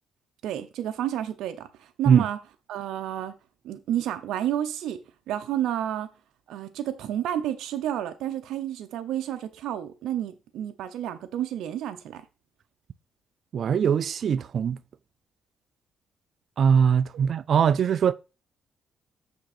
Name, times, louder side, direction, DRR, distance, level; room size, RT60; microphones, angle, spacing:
voice 1, 0.4-2.4 2.7-3.4 3.6-6.1 6.5-12.2, right 11 dB, 80° right, 0.8 m, -30 dB
voice 2, 13.5-14.8 16.6-18.1, right 7 dB, 60° right, 0.4 m, -21 dB
7.1 x 5.4 x 4.2 m
cardioid pair, 90°, 0 cm